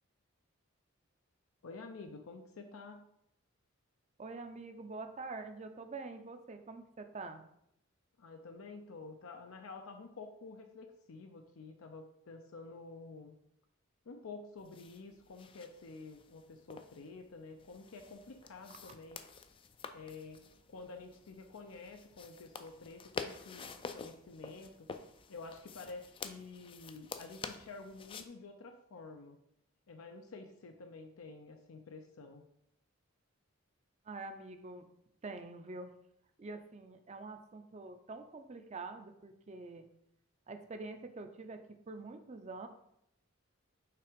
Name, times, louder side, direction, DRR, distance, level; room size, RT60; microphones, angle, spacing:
voice 1, 1.6-3.1 8.2-13.4 14.1-19.3 19.9-24.9 25.3-29.4 29.9-32.4, left 3 dB, 80° left, 5 dB, 0.5 m, -50 dB
voice 2, 4.2-7.4 18.8-18.9 34.1-34.9 35.2-35.9 36.4-39.9 40.5-42.7, right 3 dB, 30° right, 8 dB, 0.5 m, -46 dB
sound 1, 14.6-28.3, left 5 dB, 25° left, 0.3 m, -49 dB
5.8 x 3.5 x 5.0 m, 0.76 s
head